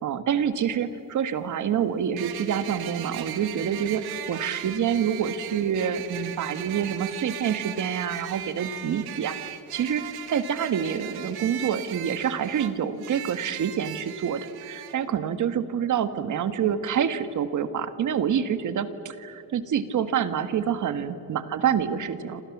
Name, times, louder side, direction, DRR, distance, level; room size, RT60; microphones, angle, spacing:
voice 1, 0.0-22.5, right 8 dB, 55° right, 11 dB, 1.6 m, -27 dB
sound 1, 0.5-0.6 2.2-14.9, right 11 dB, 90° right, 2.0 m, -38 dB
27.5 x 27.0 x 7.3 m, 2.8 s
cardioid pair, 135°, 37 cm